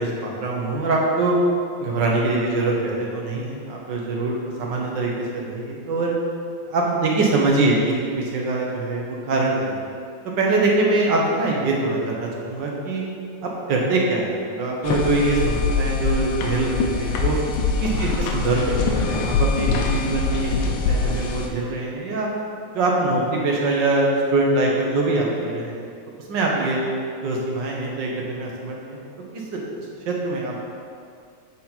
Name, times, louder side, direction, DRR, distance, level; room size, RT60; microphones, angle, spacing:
voice 1, 0.0-1.3 1.8-6.1 6.7-9.7 10.4-13.0 13.7-17.4 17.8-22.3 22.7-25.9 26.3-26.8 27.2-29.0 29.3-29.6 30.1-30.6, right 2 dB, 65° right, -2 dB, 1.7 m, -23 dB
sound 1, 14.8-21.5, left 4 dB, 90° left, 1.5 m, -23 dB
8.2 x 4.2 x 4.3 m, 2.3 s
omnidirectional pair, 2.2 m